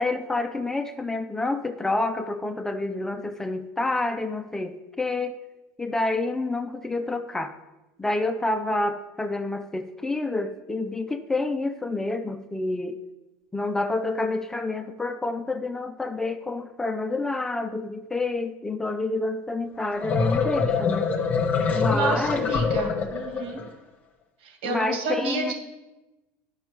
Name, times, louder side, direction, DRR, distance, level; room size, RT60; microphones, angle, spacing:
voice 1, 0.0-5.4 5.8-7.5 8.0-13.0 13.5-21.1 21.7-22.5 24.7-25.5, left 2 dB, 10° left, 8 dB, 0.4 m, -28 dB
sound 1, 19.8-23.7, left 5 dB, 25° left, 0.9 m, -25 dB
voice 2, 21.9-23.6 24.4-25.5, right 3 dB, 80° right, 3 dB, 2.3 m, -29 dB
10.5 x 5.2 x 4.6 m, 1.0 s
cardioid pair, 155°, 6 cm